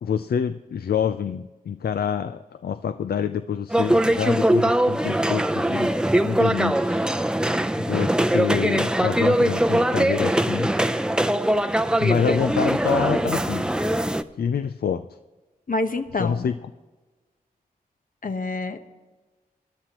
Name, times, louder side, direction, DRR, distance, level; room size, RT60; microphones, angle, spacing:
voice 1, 0.0-5.9 6.2-7.0 7.8-10.7 12.0-13.7 14.4-15.1 16.2-16.6, left 7 dB, 85° left, 10 dB, 0.4 m, -26 dB
sound 1, 3.7-14.2, right 1 dB, 5° right, 0.6 m, -22 dB
voice 2, 15.7-16.5 18.2-18.8, left 3 dB, 60° left, 7 dB, 1.0 m, -27 dB
20.0 x 11.5 x 3.0 m, 1.2 s
cardioid pair, 55°, 16 cm